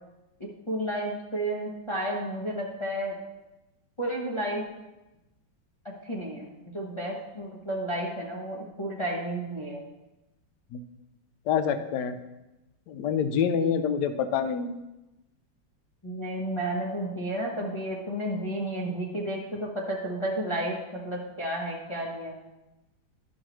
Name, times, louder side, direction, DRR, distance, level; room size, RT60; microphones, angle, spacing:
voice 1, 0.7-3.2 4.0-4.6 6.0-6.5 6.7-9.8 16.0-22.3, right 1 dB, 35° left, -3 dB, 0.4 m, -32 dB
voice 2, 11.5-12.2 12.9-14.8, left 7 dB, 70° left, 9 dB, 1.0 m, -26 dB
10.5 x 6.3 x 3.0 m, 0.99 s
omnidirectional pair, 2.2 m